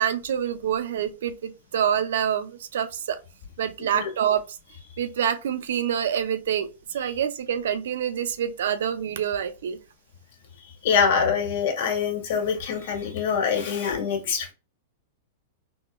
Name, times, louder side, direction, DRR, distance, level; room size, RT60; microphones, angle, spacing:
voice 1, 0.0-3.2 3.6-4.6 5.0-9.8, right 9 dB, 80° right, 0.5 m, -26 dB
voice 2, 10.8-14.5, left 6 dB, 65° left, 1.3 m, -24 dB
3.9 x 2.2 x 2.2 m
supercardioid pair, 145°, 0 cm